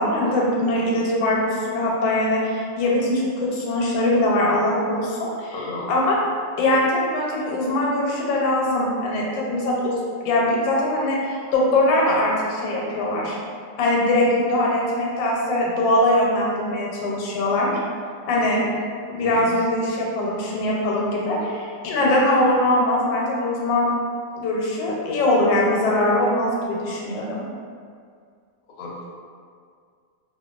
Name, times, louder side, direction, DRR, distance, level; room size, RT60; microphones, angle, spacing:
voice 1, 0.0-5.6 5.9-6.2 6.6-13.4 13.8-17.8 18.3-18.7 19.1-23.9 24.4-27.5, left 1 dB, 85° left, -3 dB, 1.3 m, -22 dB
voice 2, 5.5-5.9 19.2-19.5 21.4-21.5 28.8-29.1, left 2 dB, 70° left, -5 dB, 0.9 m, -34 dB
2.8 x 2.4 x 2.3 m, 2.2 s
omnidirectional pair, 2.0 m